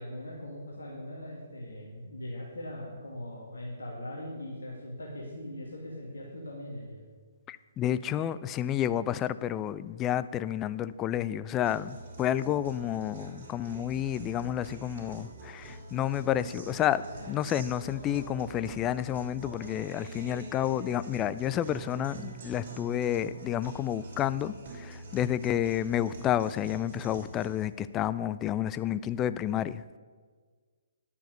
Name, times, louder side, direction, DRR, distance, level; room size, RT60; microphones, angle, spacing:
voice 1, 0.0-7.0, left 1 dB, 70° left, -3 dB, 2.2 m, -40 dB
voice 2, 7.5-30.0, left 11 dB, 20° left, 15 dB, 0.4 m, -30 dB
Guitar, 11.6-27.6, right 3 dB, 50° right, 2.9 m, -45 dB
10.5 x 7.1 x 6.6 m, 1.5 s
figure-of-eight pair, 125°, 0 cm